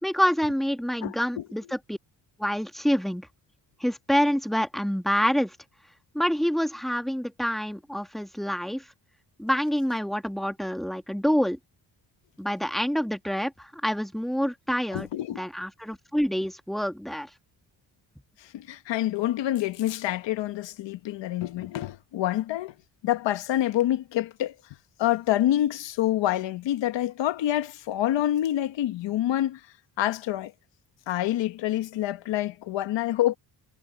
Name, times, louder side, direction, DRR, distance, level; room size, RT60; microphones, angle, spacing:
voice 1, 0.0-2.0 2.4-3.3 3.8-5.6 6.1-8.9 9.4-11.6 12.4-15.1 15.4-17.3, equal, ahead, 2.0 m, -27 dB
voice 2, 1.0-1.4 14.9-15.4 18.5-22.7 23.0-24.5 25.0-29.6 30.0-30.5 31.1-33.4, left 13 dB, 85° left, 1.3 m, -27 dB
cardioid pair, 75°, 42 cm